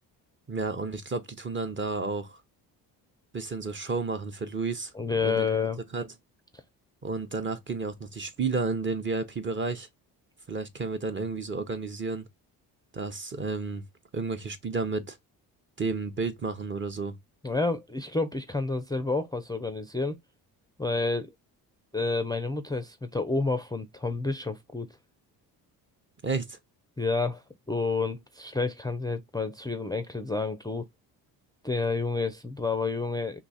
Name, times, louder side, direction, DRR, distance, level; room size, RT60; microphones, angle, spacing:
voice 1, 0.5-2.4 3.3-4.9 5.2-5.5 5.9-6.1 7.0-9.9 10.5-12.3 12.9-13.8 14.1-15.2 15.8-17.2 26.2-26.6, right 4 dB, 25° right, 0.7 m, -31 dB
voice 2, 4.9-5.8 6.5-6.6 17.4-20.2 20.8-21.3 21.9-24.9 27.0-30.9 31.6-33.4, left 3 dB, 10° left, 0.4 m, -29 dB
2.9 x 2.3 x 4.0 m
hypercardioid pair, 60°, 46 cm